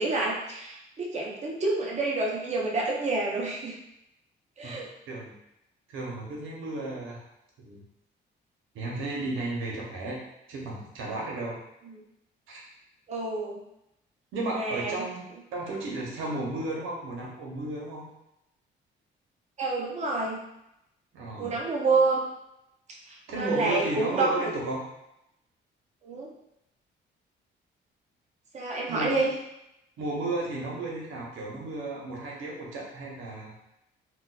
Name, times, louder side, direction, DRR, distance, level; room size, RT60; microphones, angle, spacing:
voice 1, 0.0-3.8 4.6-4.9 13.1-13.6 14.5-15.1 19.6-20.4 21.4-22.2 23.1-24.3 26.0-26.3 28.5-29.3, right 3 dB, 35° right, -3 dB, 0.7 m, -28 dB
voice 2, 4.6-5.3 5.9-7.2 7.6-7.8 8.7-10.2 10.5-11.6 12.5-12.6 14.3-15.2 15.5-18.1 21.1-21.6 23.3-24.8 28.9-29.2 30.0-33.5, right 2 dB, 85° right, -2 dB, 0.8 m, -33 dB
3.8 x 2.3 x 2.3 m, 0.85 s
cardioid pair, 90°, 20 cm